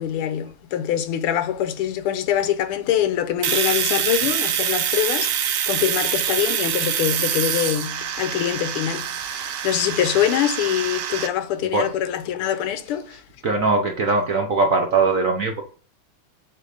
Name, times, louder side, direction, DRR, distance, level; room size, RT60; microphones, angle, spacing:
voice 1, 0.0-13.2, left 10 dB, 85° left, 1.6 m, -24 dB
Domestic sounds home sounds, 3.4-11.3, right 9 dB, 75° right, 1.6 m, -25 dB
voice 2, 13.4-15.6, right 3 dB, 60° right, 0.8 m, -20 dB
7.6 x 2.6 x 4.8 m
omnidirectional pair, 2.4 m